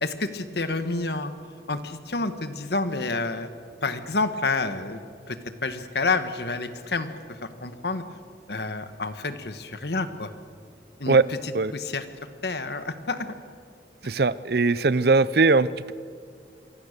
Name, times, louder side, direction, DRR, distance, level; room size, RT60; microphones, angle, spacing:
voice 1, 0.0-1.3 1.7-3.5 3.8-5.0 5.3-8.0 8.5-10.3 11.0-12.0 12.4-13.3, left 3 dB, 65° left, 10 dB, 1.5 m, -29 dB
voice 2, 14.0-15.9, right 3 dB, 60° right, 18 dB, 0.6 m, -20 dB
27.5 x 23.5 x 6.7 m, 2.2 s
head